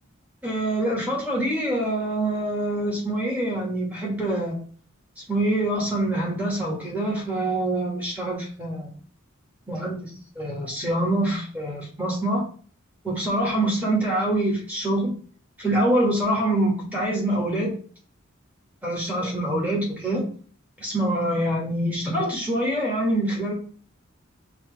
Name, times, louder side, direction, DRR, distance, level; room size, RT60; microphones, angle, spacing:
voice 1, 0.4-4.6 5.3-8.9 9.7-12.5 13.0-15.1 15.6-17.8 18.8-20.3 20.8-23.5, right 1 dB, 5° right, -3 dB, 1.3 m, -25 dB
5.7 x 2.4 x 3.1 m, 0.44 s
head